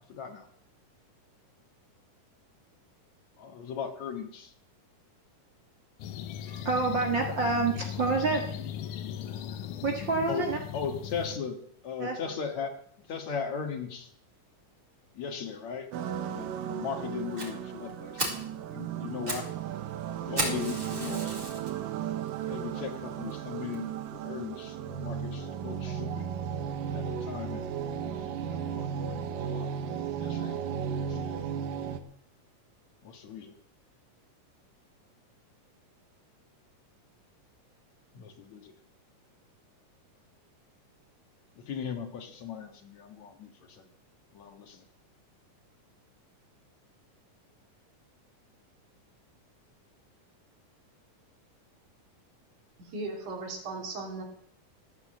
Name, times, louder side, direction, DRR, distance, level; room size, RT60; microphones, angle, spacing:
voice 1, 0.1-0.5 3.4-4.5 10.3-10.4 10.7-11.6 11.8-12.7 13.1-14.1 15.2-15.9 16.3-18.4 18.7-19.5 20.2-21.4 22.5-26.3 26.9-27.6 28.0-29.7 30.2-31.4 33.0-33.5 38.1-38.7 41.7-43.8 44.3-44.8, left 6 dB, 60° left, 5 dB, 2.8 m, -38 dB
sound 1, 6.0-11.4, left 9 dB, 75° left, 2.4 m, -38 dB
voice 2, 6.5-8.4 8.9-9.0 9.5-9.6 9.8-10.6 12.0-12.2, right 3 dB, 40° right, 1 dB, 2.0 m, -28 dB
sound 2, 15.9-32.0, right 8 dB, 85° right, 2.8 m, -35 dB
Fire, 17.4-17.5 17.9-18.0 18.2-18.5 19.0-19.5 19.8-19.9 20.4-21.7 22.3-22.4 22.9-23.0 23.3-23.4 23.7-23.8, right 1 dB, 20° right, 4.0 m, -33 dB
voice 3, 52.9-54.2, right 3 dB, 70° right, 2 dB, 4.5 m, -37 dB
15.5 x 9.6 x 7.8 m, 0.63 s
omnidirectional pair, 3.8 m